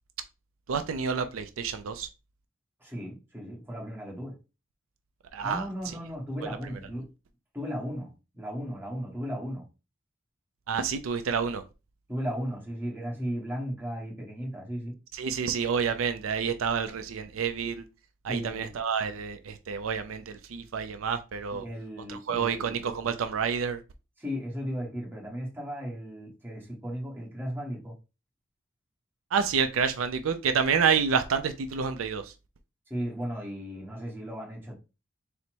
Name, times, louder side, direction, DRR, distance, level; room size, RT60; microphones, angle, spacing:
voice 1, 0.7-2.1 5.3-5.7 10.7-11.6 15.1-17.8 18.2-21.6 22.1-23.8 29.3-32.2, right 6 dB, 75° right, 0.4 m, -28 dB
voice 2, 2.8-4.4 5.4-7.1 7.5-9.7 12.1-15.0 18.3-18.7 21.5-22.7 24.2-27.9 32.9-34.7, equal, 10° right, 1.4 m, -36 dB
4.0 x 2.1 x 4.4 m
head